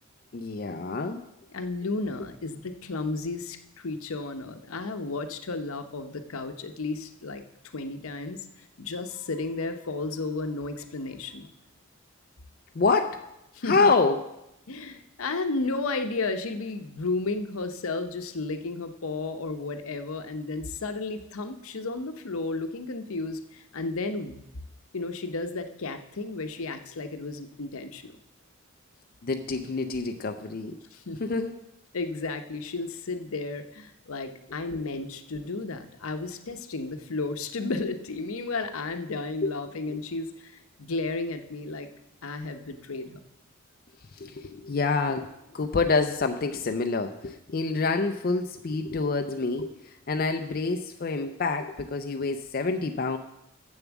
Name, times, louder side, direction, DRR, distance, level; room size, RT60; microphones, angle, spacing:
voice 1, 0.3-1.2 12.7-13.2 13.6-14.3 29.2-30.8 31.2-31.5 39.4-39.5 39.9-40.0 44.1-53.2, left 3 dB, 45° left, 6 dB, 0.4 m, -27 dB
voice 2, 1.5-7.4 7.7-11.5 13.5-13.9 14.7-24.4 24.9-28.2 30.9-31.2 31.9-41.9 42.2-43.2, left 3 dB, 75° left, 8 dB, 0.8 m, -33 dB
7.1 x 7.0 x 7.1 m, 0.86 s
head